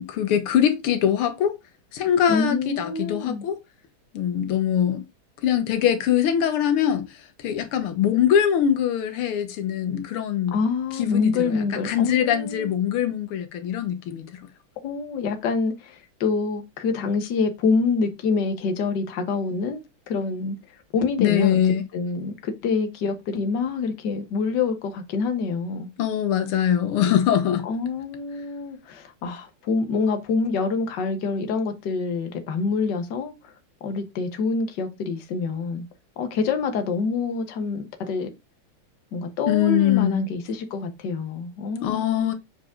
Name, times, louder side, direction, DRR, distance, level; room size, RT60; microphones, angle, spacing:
voice 1, 0.0-1.6 1.9-3.6 4.1-5.0 5.4-10.6 10.9-14.4 21.2-21.8 26.0-27.6 39.5-40.3 41.8-42.3, left 9 dB, 85° left, 1.9 m, -22 dB
voice 2, 2.3-3.4 10.5-12.7 14.8-21.6 21.9-25.9 27.6-33.5 33.8-35.8 36.2-38.3 39.1-42.3, left 4 dB, 60° left, 1.7 m, -26 dB
7.4 x 4.9 x 3.8 m
omnidirectional pair, 2.3 m